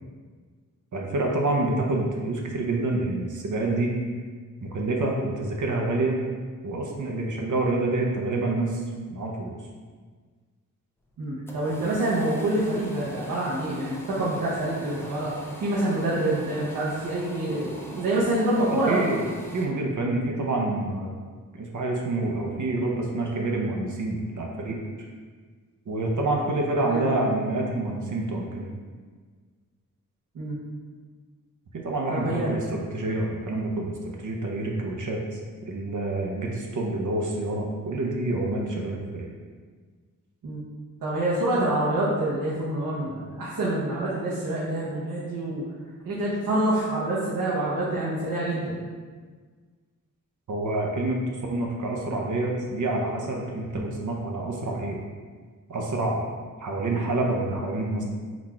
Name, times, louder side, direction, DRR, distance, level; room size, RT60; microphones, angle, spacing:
voice 1, 0.9-4.0 4.6-6.2 6.6-8.8 9.1-9.6 18.6-19.2 19.5-21.1 21.6-25.1 25.9-28.7 31.7-35.4 35.7-39.3 50.5-51.2 51.5-55.0 55.7-56.2 56.6-58.0, right 2 dB, 60° right, 0 dB, 0.7 m, -27 dB
sound 1, 11.1-19.7, equal, 5° left, 0.5 m, -43 dB
voice 2, 11.2-15.3 15.6-19.2 26.9-27.1 30.3-30.6 32.1-32.5 40.4-40.6 41.0-45.6 46.0-48.8, right 1 dB, 85° right, -9 dB, 1.0 m, -26 dB
4.1 x 2.4 x 4.3 m, 1.5 s
wide cardioid pair, 115°, 33 cm